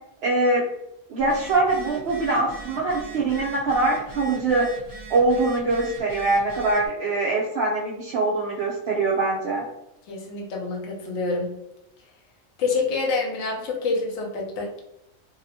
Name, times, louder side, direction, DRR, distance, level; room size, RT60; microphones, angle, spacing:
voice 1, 0.2-0.6 1.1-4.7 5.1-9.6, right 3 dB, 65° right, -5 dB, 0.6 m, -23 dB
Telephone, 1.2-6.9, right 2 dB, 35° right, 1.1 m, -41 dB
voice 2, 10.1-11.5 12.6-14.7, left 4 dB, 65° left, -1 dB, 0.8 m, -27 dB
2.7 x 2.0 x 2.7 m, 0.85 s
omnidirectional pair, 1.5 m